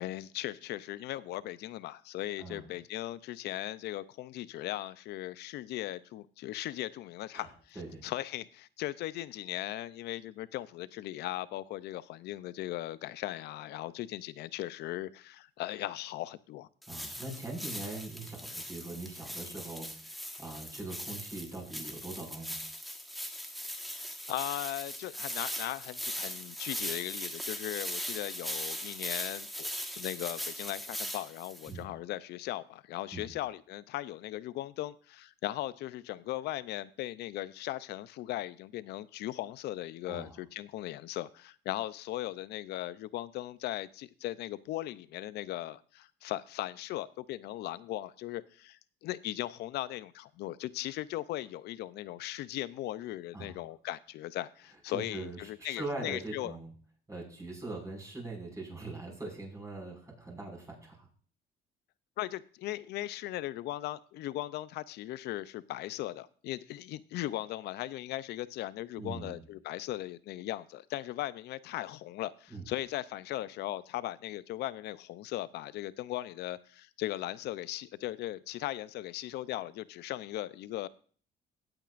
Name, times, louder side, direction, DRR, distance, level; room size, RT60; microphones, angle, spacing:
voice 1, 0.0-7.5 8.0-16.7 24.3-56.5 62.2-80.9, left 15 dB, 75° left, 0.6 m, -38 dB
sound 1, 16.8-31.7, equal, ahead, 1.5 m, -40 dB
voice 2, 16.9-22.6 31.7-31.9 33.1-33.3 40.1-40.3 53.3-53.6 54.9-56.7 57.1-61.1 69.0-69.4 72.5-72.6, right 2 dB, 20° right, 5.5 m, -42 dB
16.5 x 8.9 x 2.5 m
cardioid pair, 110°, 17 cm